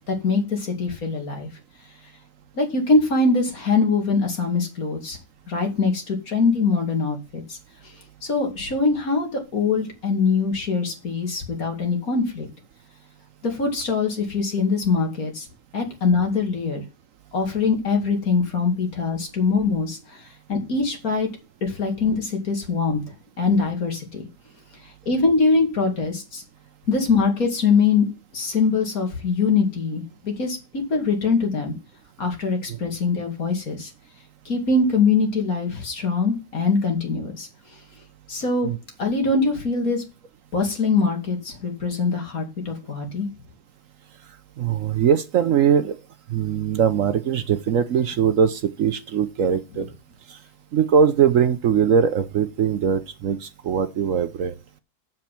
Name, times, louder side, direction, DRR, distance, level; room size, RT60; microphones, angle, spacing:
voice 1, 0.1-1.5 2.6-5.2 5.5-7.6 8.2-12.5 13.4-15.5 15.7-16.8 17.3-20.2 20.5-21.3 21.6-23.0 23.4-24.2 25.1-26.4 26.9-28.1 28.3-31.7 32.2-33.9 34.5-37.5 38.3-38.7 39.0-40.0 40.5-43.3, left 4 dB, 60° left, 2.9 m, -23 dB
voice 2, 44.6-46.0 46.3-49.9 50.7-54.5, right 7 dB, 60° right, 1.0 m, -21 dB
7.7 x 7.3 x 5.8 m
omnidirectional pair, 1.7 m